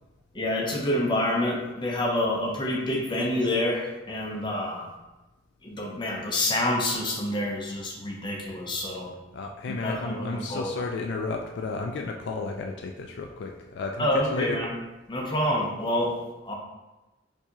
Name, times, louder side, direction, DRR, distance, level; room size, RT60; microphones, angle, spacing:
voice 1, 0.3-4.9 5.6-9.1 9.7-10.7 14.0-14.8 15.1-16.2 16.4-16.6, left 1 dB, 25° left, -1 dB, 0.6 m, -27 dB
voice 2, 9.3-14.6, left 3 dB, 60° left, 2 dB, 0.3 m, -32 dB
4.5 x 2.8 x 2.8 m, 1.1 s
head